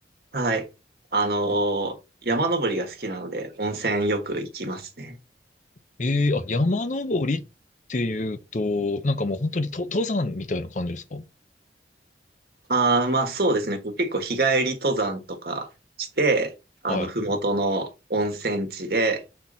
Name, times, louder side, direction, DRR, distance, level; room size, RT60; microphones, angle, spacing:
voice 1, 0.3-0.7 1.1-1.9 2.2-5.2 12.7-15.7 16.0-16.5 16.8-19.2, right 2 dB, 55° right, 1.4 m, -25 dB
voice 2, 6.0-7.4 7.9-11.3 16.9-17.1, left 2 dB, 40° left, 0.6 m, -26 dB
5.7 x 4.3 x 3.9 m
head